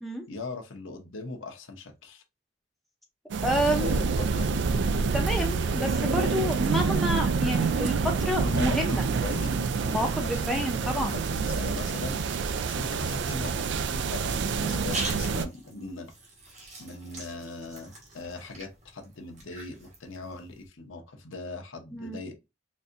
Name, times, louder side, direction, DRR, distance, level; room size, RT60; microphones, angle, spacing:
voice 1, 0.3-2.2 3.5-4.6 8.4-12.2 12.7-16.1 16.8-22.3, left 3 dB, 90° left, 0.9 m, -39 dB
sound 1, 3.3-15.5, right 5 dB, 65° right, 0.3 m, -27 dB
voice 2, 3.4-4.0 5.1-9.1 9.8-11.1 14.6-14.9 21.9-22.2, equal, ahead, 0.6 m, -29 dB
sound 2, 14.6-20.7, right 2 dB, 35° right, 1.1 m, -42 dB
4.1 x 2.6 x 2.5 m
head